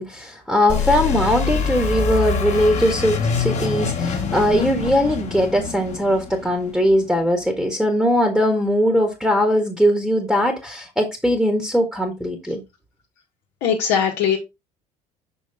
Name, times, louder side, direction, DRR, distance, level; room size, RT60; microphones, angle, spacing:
voice 1, 0.0-12.6, equal, ahead, 1.6 m, -20 dB
sound 1, 0.7-7.3, left 5 dB, 35° left, 1.8 m, -25 dB
voice 2, 13.6-14.4, left 8 dB, 55° left, 1.5 m, -20 dB
6.2 x 5.3 x 3.4 m
figure-of-eight pair, 65°, 21 cm